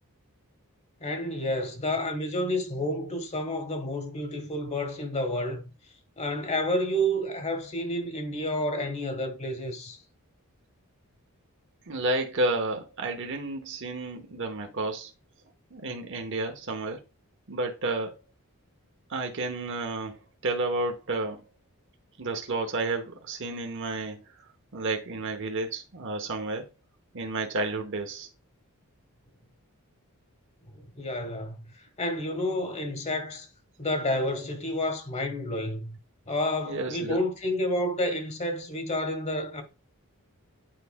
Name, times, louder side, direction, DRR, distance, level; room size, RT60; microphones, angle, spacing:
voice 1, 1.0-5.6 6.2-10.0 30.7-33.5 33.8-36.0 36.3-39.6, left 1 dB, 30° left, 1.4 m, -30 dB
voice 2, 11.9-15.1 15.7-17.0 17.5-18.2 19.1-21.4 22.2-24.2 24.7-26.7 27.1-28.3 36.6-37.2, right 2 dB, 55° right, 1.0 m, -31 dB
9.2 x 4.8 x 2.2 m
head